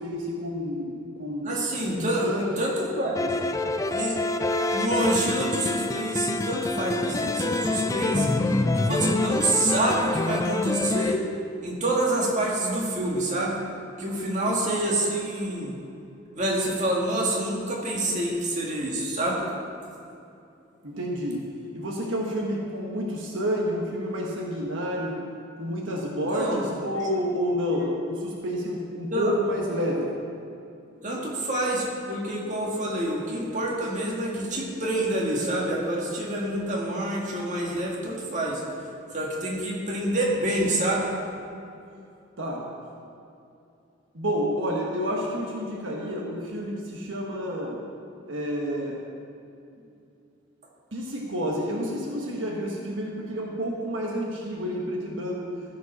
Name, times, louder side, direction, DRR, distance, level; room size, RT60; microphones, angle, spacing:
voice 1, 0.0-1.7 1.9-2.6 20.8-21.5 21.7-25.2 25.6-30.1 42.4-42.7 44.1-47.8 48.3-49.0 50.9-55.4, equal, 75° right, -2 dB, 1.4 m, -29 dB
voice 2, 1.4-2.2 2.6-3.3 3.9-4.2 4.7-8.3 8.7-11.2 11.6-13.6 14.0-15.8 16.3-19.4 26.3-26.6 29.1-29.3 31.0-38.6 39.1-41.1, right 1 dB, 40° right, -3 dB, 1.9 m, -27 dB
sound 1, 3.2-11.2, left 2 dB, 15° left, 0.3 m, -26 dB
14.5 x 5.4 x 6.0 m, 2.6 s
head